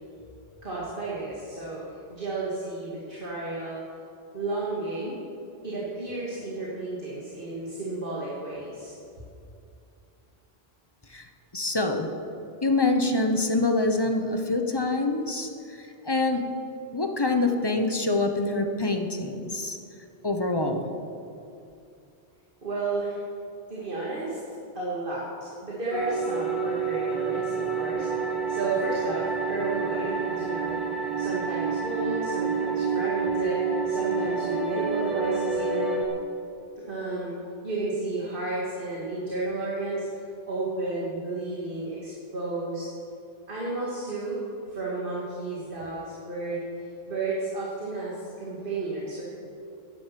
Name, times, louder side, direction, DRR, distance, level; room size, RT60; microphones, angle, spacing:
voice 1, 0.6-3.8 4.3-5.2 5.6-8.9 22.6-23.2 23.7-28.1 28.5-30.8 31.2-35.9 36.8-37.3 37.6-42.9 43.5-44.4 44.7-46.6 47.1-49.2, right 2 dB, 55° right, -6 dB, 2.3 m, -32 dB
voice 2, 11.5-12.1 12.6-16.4 16.9-19.8 20.2-20.9, left 2 dB, 25° left, 5 dB, 0.8 m, -25 dB
sound 1, 25.9-36.1, right 5 dB, ahead, 1.8 m, -28 dB
10.5 x 10.5 x 7.5 m, 2.6 s
omnidirectional pair, 1.1 m